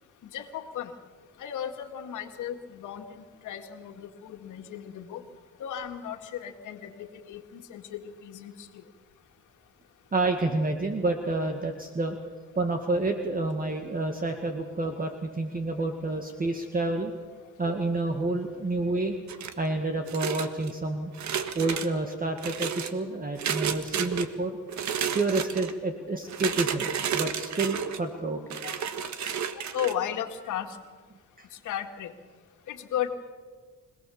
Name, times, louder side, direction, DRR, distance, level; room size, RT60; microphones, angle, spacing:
voice 1, 0.2-0.9 1.4-5.2 5.6-8.7 28.6-28.8 29.7-30.8 31.6-32.1 32.7-33.1, left 10 dB, 80° left, 5 dB, 2.1 m, -35 dB
voice 2, 10.1-12.2 12.6-17.1 17.6-19.2 19.6-21.1 21.6-24.6 25.1-28.6 29.5-29.6 31.4-31.5, right 2 dB, 30° right, 5 dB, 2.0 m, -29 dB
sound 1, 19.3-19.7 20.1-20.7 21.1-21.9 22.4-22.9 23.4-24.3 24.7-25.7 26.3-28.0 28.5-29.9, right 8 dB, 70° right, 1.6 m, -31 dB
25.5 x 18.0 x 7.1 m, 1.5 s
cardioid pair, 90°, 30 cm